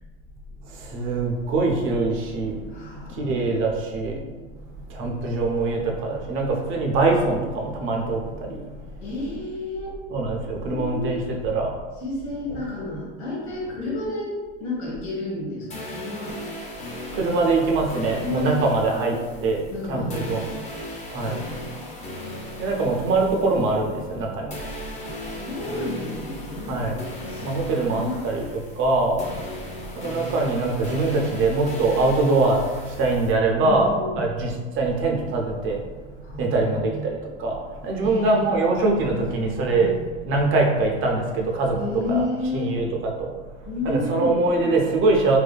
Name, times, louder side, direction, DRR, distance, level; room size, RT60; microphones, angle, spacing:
voice 1, 0.8-2.6 3.2-4.2 4.9-8.6 10.1-11.7 17.1-19.6 19.9-20.4 21.1-21.4 22.6-24.5 26.7-27.0 27.4-28.4 28.8-29.2 30.0-32.6 33.0-33.9 34.1-35.8 36.4-37.6 37.8-39.9 40.3-41.8 42.1-42.2 42.5-42.9 43.2-43.3 43.8-45.4, right 3 dB, 40° right, 0 dB, 0.5 m, -23 dB
voice 2, 2.7-3.6 9.0-9.9 10.6-11.3 12.0-14.3 14.6-16.4 18.2-18.7 19.0-19.1 19.7-20.6 21.1-22.0 25.3-26.8 27.3-28.2 33.6-34.2 36.2-37.1 38.0-38.4 39.7-40.1 41.7-42.8 43.6-44.4, left 2 dB, 75° left, -5 dB, 1.3 m, -31 dB
sound 1, 15.7-24.2 24.5-33.3, left 1 dB, 20° left, 0.6 m, -37 dB
2.6 x 2.4 x 2.2 m, 1.3 s
supercardioid pair, 120°, 31 cm